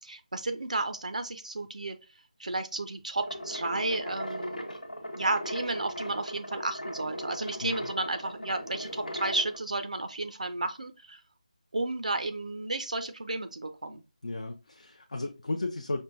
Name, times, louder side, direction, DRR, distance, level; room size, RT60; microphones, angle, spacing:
voice 1, 0.0-2.0 2.4-4.7 5.1-11.2 11.7-14.0, right 2 dB, 65° right, 0.4 m, -32 dB
sound 1, 3.2-9.6, equal, 80° left, 0.9 m, -38 dB
voice 2, 14.2-16.0, left 2 dB, 55° left, 0.4 m, -34 dB
5.3 x 2.2 x 2.5 m
figure-of-eight pair, 160°, 4 cm